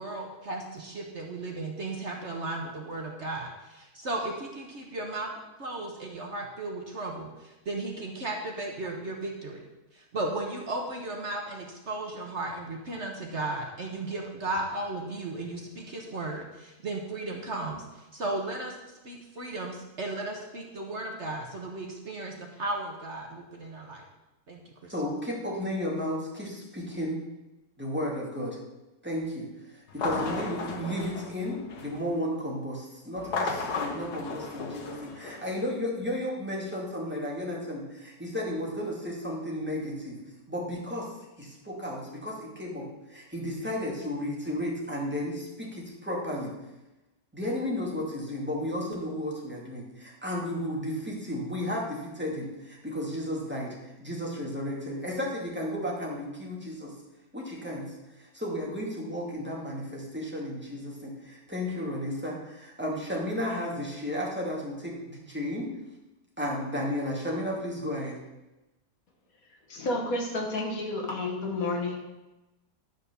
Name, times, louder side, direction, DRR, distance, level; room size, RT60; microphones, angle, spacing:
voice 1, 0.0-5.3 5.6-9.6 9.9-24.0 24.5-24.9, right 2 dB, 50° right, 1 dB, 1.4 m, -35 dB
voice 2, 24.9-27.2 27.8-28.6 29.0-29.5 29.7-40.2 40.5-46.5 47.3-56.9 57.3-65.7 66.4-68.2, left 1 dB, 5° right, -4 dB, 2.4 m, -33 dB
sound 1, 29.9-32.1 33.2-35.7, left 4 dB, 80° left, 1.8 m, -34 dB
voice 3, 69.7-72.0, left 2 dB, 60° left, 1 dB, 1.9 m, -30 dB
11.5 x 5.2 x 6.8 m, 1.0 s
omnidirectional pair, 1.7 m